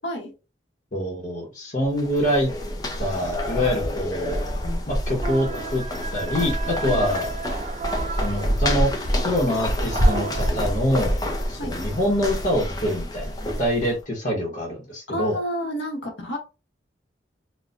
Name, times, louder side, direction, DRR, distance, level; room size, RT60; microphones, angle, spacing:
voice 1, 0.9-2.5 3.0-4.4 4.9-5.8 6.1-7.3 8.2-8.9 9.2-11.2 11.5-15.4, equal, 45° left, -4 dB, 1.0 m, -25 dB
sound 1, 1.8-14.0, equal, 20° left, 0.5 m, -27 dB
sound 2, 5.2-10.5, right 5 dB, 40° right, 0.3 m, -34 dB
voice 2, 15.1-16.4, equal, 75° left, 2 dB, 1.0 m, -30 dB
4.2 x 2.2 x 2.4 m, 0.29 s
head